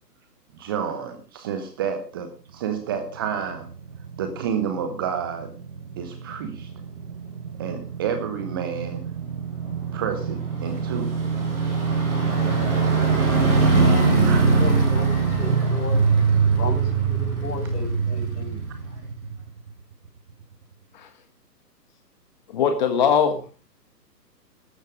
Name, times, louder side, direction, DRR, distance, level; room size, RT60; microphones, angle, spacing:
voice 1, 0.5-3.7 4.2-5.5 6.0-6.7 7.6-9.0 9.9-11.2 14.2-14.7, right 7 dB, 15° right, 7 dB, 0.9 m, -30 dB
sound 1, 3.1-19.7 20.0-20.1, right 4 dB, 45° right, 7.3 m, -23 dB
voice 2, 14.4-16.0 16.5-18.6, left 2 dB, 65° left, 3 dB, 6.7 m, -34 dB
voice 3, 22.5-23.5, left 7 dB, 25° left, 7 dB, 1.3 m, -21 dB
14.5 x 12.0 x 5.0 m, 0.37 s
figure-of-eight pair, 135°, 50 cm